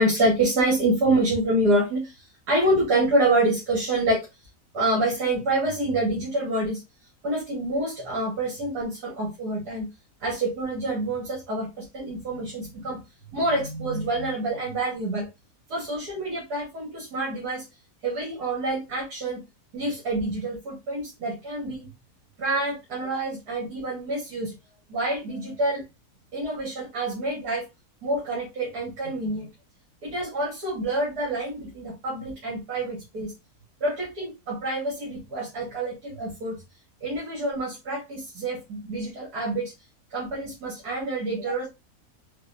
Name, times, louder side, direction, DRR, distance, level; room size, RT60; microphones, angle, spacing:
voice 1, 0.0-4.3 4.7-6.8 7.2-9.9 10.2-13.0 13.3-15.3 15.7-17.6 18.0-19.4 19.7-21.9 22.4-24.6 24.9-25.8 26.3-27.7 28.0-29.5 30.0-33.3 33.8-36.6 37.0-39.7 40.1-41.7, right 1 dB, 75° right, -4 dB, 2.1 m, -27 dB
4.7 x 2.4 x 2.6 m, 0.23 s
omnidirectional pair, 1.7 m